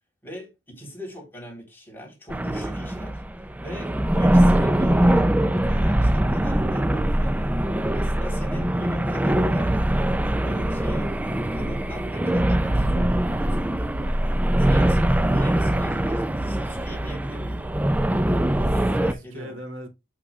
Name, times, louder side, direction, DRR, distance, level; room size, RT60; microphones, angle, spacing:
voice 1, 0.2-3.2 3.6-7.5 7.9-11.1 11.5-13.9 14.6-17.8 18.4-19.6, equal, 10° left, 3.8 m, -40 dB
sound 1, 2.3-19.1, right 1 dB, 10° right, 0.4 m, -22 dB
voice 2, 13.9-15.8 18.9-19.9, equal, 80° right, 2.8 m, -42 dB
8.3 x 8.3 x 2.4 m
head